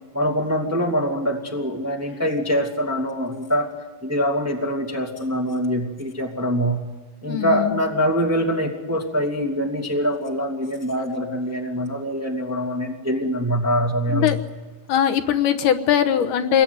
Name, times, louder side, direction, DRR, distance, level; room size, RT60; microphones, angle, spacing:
voice 1, 0.1-3.7 4.0-6.8 7.2-14.4, equal, 5° right, 1 dB, 1.8 m, -24 dB
voice 2, 7.2-7.8 14.1-14.4 14.9-16.6, left 9 dB, 75° left, 6 dB, 2.6 m, -20 dB
26.5 x 21.0 x 9.5 m, 1.3 s
omnidirectional pair, 3.8 m